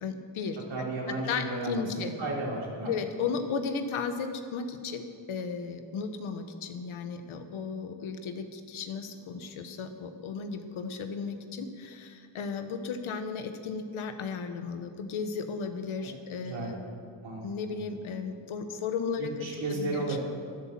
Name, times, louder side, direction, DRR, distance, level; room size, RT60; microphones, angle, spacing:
voice 1, 0.0-2.1 2.9-16.8 17.4-20.0, left 5 dB, 80° left, 7 dB, 1.3 m, -35 dB
voice 2, 0.7-2.9 16.4-16.7 17.2-17.4 17.7-17.8 19.2-20.2, right 2 dB, 65° right, -3 dB, 4.2 m, -33 dB
12.0 x 11.0 x 7.6 m, 2.2 s
cardioid pair, 65°, 48 cm